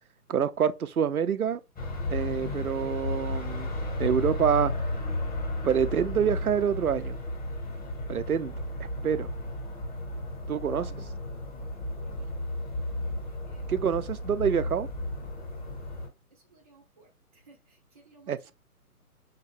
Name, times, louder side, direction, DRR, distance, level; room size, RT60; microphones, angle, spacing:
voice 1, 0.3-1.6 2.1-3.7 4.0-4.7 5.6-7.2 8.1-8.5 8.8-9.3 10.5-10.9 13.7-14.9 18.3-18.4, right 8 dB, 70° right, 0.6 m, -26 dB
sound 1, 1.8-16.1, left 1 dB, 5° left, 1.0 m, -33 dB
voice 2, 11.9-12.3 13.3-13.8 16.3-18.5, right 3 dB, 25° right, 0.7 m, -60 dB
5.7 x 2.2 x 3.5 m
figure-of-eight pair, 140°, 46 cm